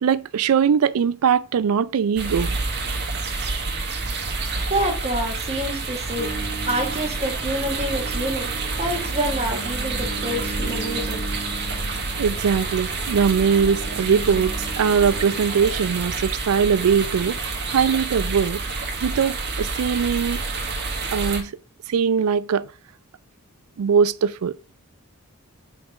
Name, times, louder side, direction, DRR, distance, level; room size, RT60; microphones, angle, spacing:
voice 1, 0.0-2.5 12.2-17.4 17.7-18.6 19.0-20.4 21.1-21.5 21.9-22.7 23.8-24.5, right 7 dB, 75° right, 0.4 m, -21 dB
sound 1, 2.1-21.4, right 3 dB, 50° right, 1.2 m, -28 dB
voice 2, 4.7-6.3 6.7-8.5 8.8-11.2, right 1 dB, 30° right, 1.4 m, -27 dB
sound 2, 6.2-15.5, right 1 dB, 45° left, 0.9 m, -37 dB
4.5 x 4.2 x 5.1 m
head